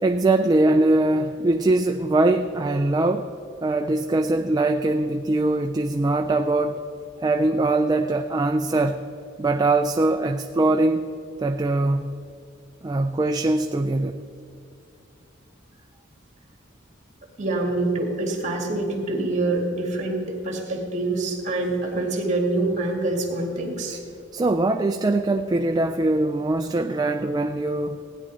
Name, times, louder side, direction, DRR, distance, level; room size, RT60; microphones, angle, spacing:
voice 1, 0.0-3.3 3.6-6.8 7.2-9.0 9.4-11.1 11.4-12.1 12.8-14.2 24.3-28.0, right 2 dB, 20° right, 6 dB, 0.3 m, -22 dB
voice 2, 17.4-24.0, right 2 dB, 35° right, 1 dB, 2.1 m, -25 dB
16.0 x 9.8 x 4.1 m, 2.6 s
head